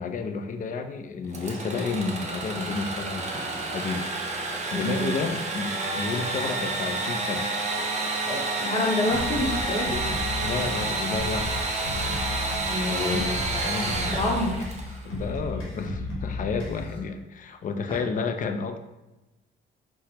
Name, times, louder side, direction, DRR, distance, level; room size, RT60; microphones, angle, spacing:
voice 1, 0.0-4.1 4.7-7.5 10.4-11.5 12.9-14.0 15.0-18.8, left 4 dB, 45° left, 7 dB, 0.4 m, -31 dB
Engine / Sawing, 1.3-15.0, right 2 dB, 35° right, 0.5 m, -30 dB
voice 2, 4.7-5.1 6.3-6.5 8.2-10.0 12.7-14.7 17.9-18.0, left 1 dB, 25° left, -1 dB, 0.8 m, -29 dB
sound 1, 9.1-17.1, left 2 dB, 90° left, 1.0 m, -34 dB
4.1 x 2.1 x 2.8 m, 1.0 s
cardioid pair, 90°, 20 cm